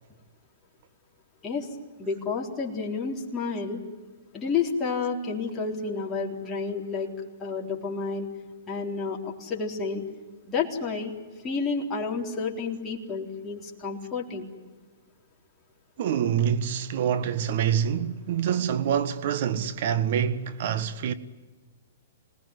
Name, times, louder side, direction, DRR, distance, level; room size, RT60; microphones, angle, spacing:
voice 1, 2.0-3.8 4.3-7.1 7.4-8.3 8.7-10.0 10.5-11.1 11.4-14.5, left 5 dB, 20° left, 3.9 m, -30 dB
voice 2, 16.0-21.1, right 8 dB, 55° right, 1.6 m, -26 dB
26.0 x 19.5 x 9.7 m
hypercardioid pair, 140°, 0 cm